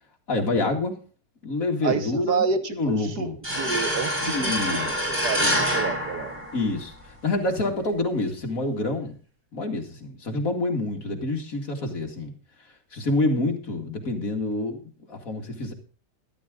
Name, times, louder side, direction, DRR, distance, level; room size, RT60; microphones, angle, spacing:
voice 1, 0.3-0.9 1.4-3.4 4.2-5.1 5.4-5.6 6.5-9.2 9.5-12.3 12.9-15.7, left 2 dB, 45° left, 2 dB, 2.6 m, -27 dB
voice 2, 1.8-3.3 3.6-4.8 5.2-6.4, right 5 dB, 60° right, 7 dB, 1.9 m, -29 dB
sound 1, 3.4-7.0, equal, 5° right, 4.3 m, -26 dB
13.0 x 12.0 x 3.8 m, 0.38 s
omnidirectional pair, 2.0 m